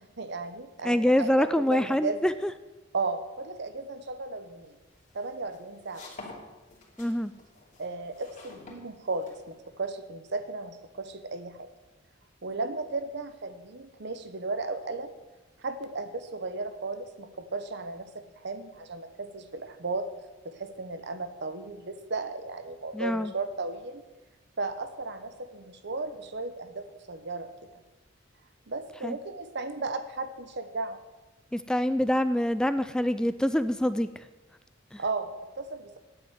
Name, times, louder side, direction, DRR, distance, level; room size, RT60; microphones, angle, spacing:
voice 1, 0.0-2.2 2.9-4.7 5.1-6.0 7.8-11.7 12.4-15.1 15.6-20.1 20.4-24.0 24.6-27.5 28.7-31.0 35.0-35.3 35.6-36.0, right 3 dB, 60° right, 10 dB, 1.0 m, -35 dB
voice 2, 0.8-2.3 7.0-7.3 22.9-23.3 29.0-29.2 31.5-34.1 34.9-35.0, left 1 dB, 5° left, 12 dB, 0.3 m, -25 dB
sound 1, 4.6-9.7, left 2 dB, 40° left, 2.8 m, -49 dB
9.3 x 7.6 x 9.2 m, 1.1 s
head